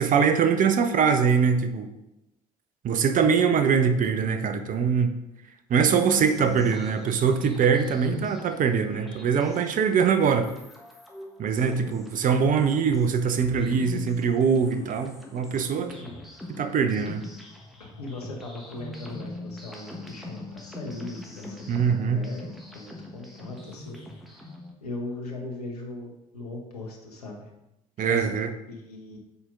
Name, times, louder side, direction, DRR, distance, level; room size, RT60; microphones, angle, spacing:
voice 1, 0.0-1.9 2.8-5.1 5.7-10.5 11.4-15.9 16.5-17.2 21.7-22.2 28.0-28.5, right 6 dB, 45° right, 8 dB, 0.8 m, -23 dB
sound 1, 5.9-24.7, left 2 dB, ahead, 1.4 m, -42 dB
voice 2, 11.5-11.9 15.9-16.3 17.8-24.5 24.8-27.5 28.1-28.4 28.7-29.2, left 2 dB, 90° left, 0 dB, 1.1 m, -39 dB
6.9 x 4.3 x 3.8 m, 0.91 s
hypercardioid pair, 55°, 19 cm